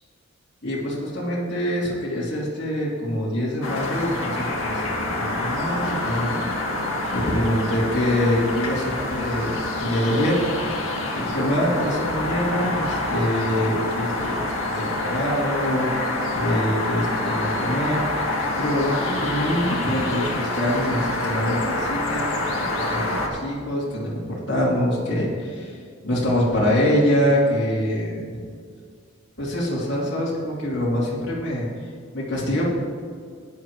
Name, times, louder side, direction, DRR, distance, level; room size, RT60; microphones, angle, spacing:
voice 1, 0.6-6.4 7.1-10.8 11.1-14.4 14.7-15.9 16.4-18.0 18.6-22.2 22.6-28.4 29.4-31.7 32.1-32.7, equal, 55° left, -7 dB, 3.0 m, -25 dB
sound 1, 3.6-23.3, left 2 dB, 75° left, 1.9 m, -27 dB
15.5 x 10.0 x 3.1 m, 2.1 s
head